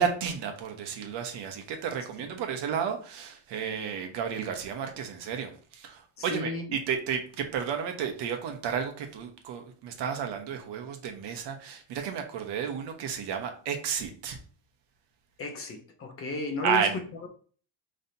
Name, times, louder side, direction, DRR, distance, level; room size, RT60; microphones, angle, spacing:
voice 1, 0.0-14.4 16.6-17.0, right 7 dB, 55° right, 4 dB, 1.0 m, -32 dB
voice 2, 6.2-6.6 15.4-16.9 17.2-17.3, left 2 dB, 30° left, 4 dB, 0.6 m, -33 dB
5.4 x 3.2 x 2.7 m, 0.42 s
cardioid pair, 170°, 49 cm